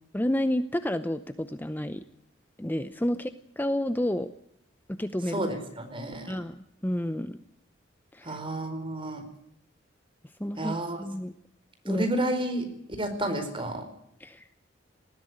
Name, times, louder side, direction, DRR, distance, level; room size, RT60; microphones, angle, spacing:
voice 1, 0.1-2.0 2.6-3.3 3.6-4.3 4.9-5.4 6.3-7.4 8.1-8.4 10.4-11.3 11.8-12.1 14.2-14.5, left 1 dB, 10° left, 11 dB, 0.7 m, -30 dB
voice 2, 5.3-6.4 8.2-9.2 10.6-11.0 11.9-12.7 13.0-13.8, right 1 dB, 30° right, 6 dB, 4.7 m, -31 dB
19.5 x 14.5 x 9.9 m, 0.76 s
head